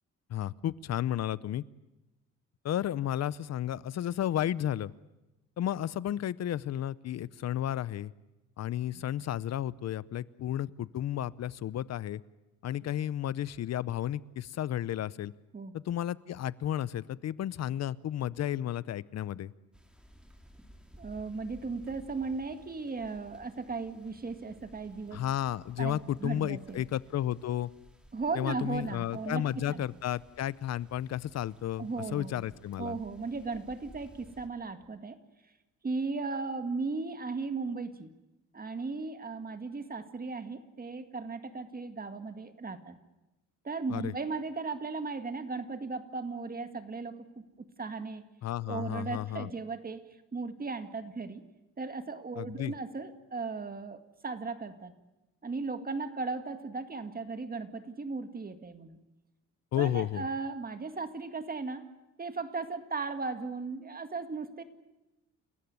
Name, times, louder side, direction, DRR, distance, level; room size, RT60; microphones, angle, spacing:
voice 1, 0.3-1.6 2.6-4.9 5.6-8.1 8.6-12.2 12.6-15.3 15.7-19.5 25.1-27.7 28.3-33.0 43.9-44.1 48.4-49.5 52.4-52.7 59.7-60.2, left 11 dB, 60° left, 20 dB, 0.7 m, -33 dB
sound 1, 19.7-34.5, equal, 5° right, 3.1 m, -57 dB
voice 2, 21.0-25.2 25.8-26.8 28.1-29.8 31.8-32.4 32.8-35.2 35.8-38.1 38.5-42.9 43.6-48.2 48.7-51.4 51.8-54.9 55.4-59.0 59.8-61.9 62.2-64.6, right 4 dB, 30° right, 9 dB, 2.0 m, -36 dB
29.5 x 14.5 x 9.5 m, 1.0 s
cardioid pair, 90°, 30 cm